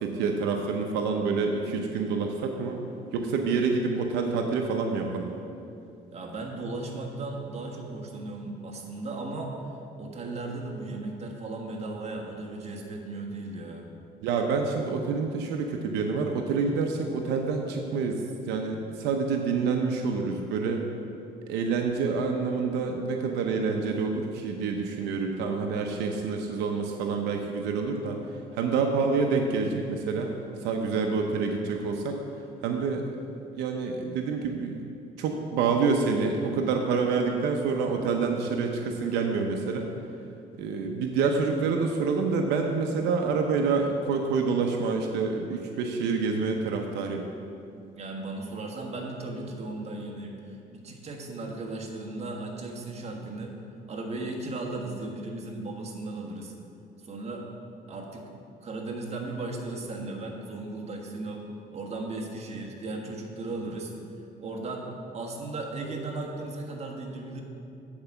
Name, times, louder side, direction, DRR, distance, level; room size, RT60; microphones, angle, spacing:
voice 1, 0.0-2.8 3.1-5.3 14.2-18.2 18.5-20.8 21.5-28.2 28.6-30.3 30.6-32.2 32.6-33.0 33.6-34.8 35.2-39.9 40.6-47.2, right 4 dB, 85° right, 3 dB, 0.7 m, -27 dB
voice 2, 6.1-9.6 10.0-13.9 47.9-53.6 53.9-56.5 57.0-57.5 57.9-58.3 58.6-61.5 61.7-63.9 64.4-64.9 65.1-67.4, right 2 dB, 40° right, 0 dB, 1.4 m, -36 dB
8.8 x 4.8 x 6.9 m, 2.6 s
cardioid pair, 110°, 17 cm